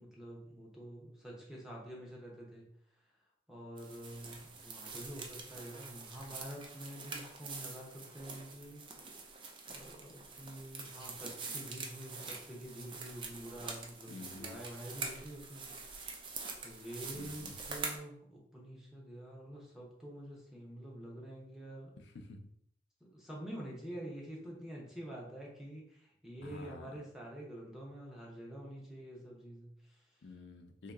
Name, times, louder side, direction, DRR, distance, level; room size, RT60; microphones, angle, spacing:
voice 1, 0.0-2.7 3.5-8.8 9.7-16.0 16.6-21.9 23.0-30.2, right 1 dB, 5° right, -4 dB, 0.7 m, -47 dB
sound 1, 3.8-18.0, right 4 dB, 25° right, 0.4 m, -45 dB
voice 2, 14.1-14.6 17.1-17.6 22.0-22.5 26.4-26.9 30.2-30.9, left 3 dB, 85° left, 5 dB, 0.5 m, -50 dB
2.9 x 2.8 x 3.5 m, 0.69 s
head